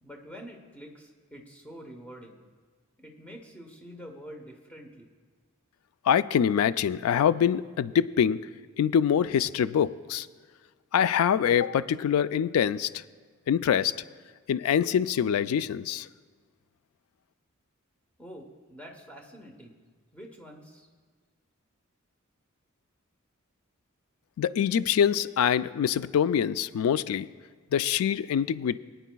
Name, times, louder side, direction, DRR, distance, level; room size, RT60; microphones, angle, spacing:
voice 1, 0.0-2.4 3.0-5.1 18.2-19.8 20.1-20.9, equal, 5° left, 1 dB, 0.9 m, -46 dB
voice 2, 6.1-8.4 8.8-10.3 10.9-13.0 13.5-13.9 14.5-16.1 24.4-27.3 27.7-28.8, left 8 dB, 90° left, 17 dB, 0.3 m, -24 dB
23.5 x 9.1 x 2.3 m, 1.5 s
head